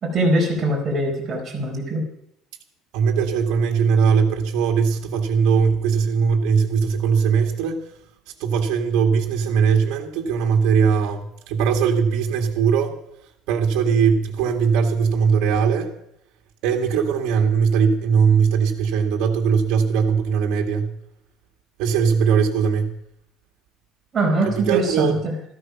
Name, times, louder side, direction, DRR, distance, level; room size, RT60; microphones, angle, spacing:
voice 1, 0.0-2.0 24.1-25.3, right 1 dB, 20° right, -1 dB, 4.4 m, -22 dB
voice 2, 2.9-7.8 8.4-13.0 13.5-15.9 16.6-20.9 21.8-22.9 24.7-25.2, right 6 dB, 65° right, 2 dB, 2.0 m, -20 dB
14.0 x 13.5 x 5.9 m, 0.75 s
cardioid pair, 180°, 0 cm